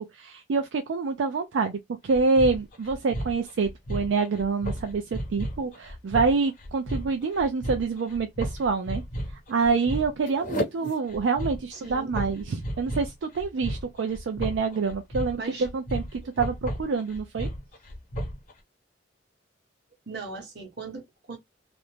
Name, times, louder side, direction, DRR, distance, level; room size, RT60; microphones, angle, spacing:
voice 1, 0.0-9.0 9.5-17.5, right 4 dB, 85° right, 0.4 m, -27 dB
sound 1, 2.1-18.5, equal, 45° left, 0.9 m, -34 dB
voice 2, 11.7-12.5 15.4-15.7 20.1-21.4, right 4 dB, 65° right, 1.0 m, -38 dB
2.5 x 2.1 x 3.1 m
head